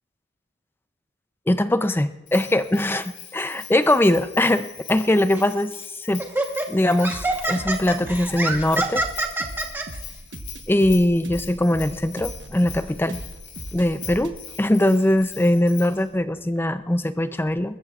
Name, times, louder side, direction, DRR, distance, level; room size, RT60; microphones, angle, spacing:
voice 1, 1.5-3.0 3.3-6.2 6.7-9.0 10.7-13.2 13.7-17.8, left 1 dB, 10° left, 11 dB, 0.5 m, -21 dB
Bell, 2.3-16.1, left 9 dB, 75° left, 2.8 m, -42 dB
Laughter, 5.3-5.6 6.2-9.8, right 2 dB, 10° right, 1.2 m, -26 dB
sound 1, 7.1-16.7, right 1 dB, 90° right, 1.1 m, -40 dB
28.0 x 14.0 x 2.4 m, 0.97 s
head